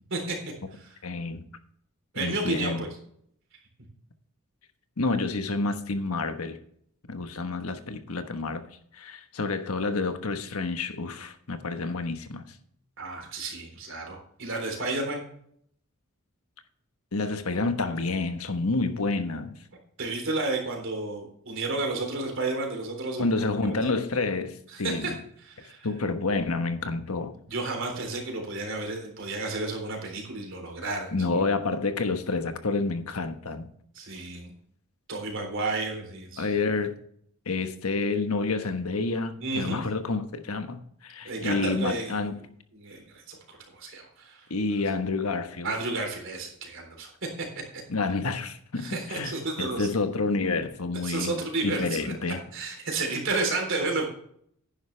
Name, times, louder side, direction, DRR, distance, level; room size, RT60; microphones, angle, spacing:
voice 1, 1.0-1.4 2.1-2.8 5.0-6.6 7.1-8.6 8.9-12.4 17.1-19.6 23.2-25.2 25.8-27.4 31.1-33.7 36.4-37.0 37.5-42.4 44.5-45.8 47.9-52.4, left 3 dB, 90° left, 1.2 m, -29 dB
voice 2, 2.1-2.9 13.0-15.2 20.0-23.3 23.6-23.7 24.7-25.1 25.4-25.9 27.5-31.4 33.9-34.5 35.1-36.5 39.4-39.8 41.2-42.2 42.7-44.5 45.6-47.8 48.8-49.9 51.0-52.1 52.5-54.1, right 3 dB, 60° right, 3.7 m, -32 dB
10.5 x 10.0 x 3.3 m
head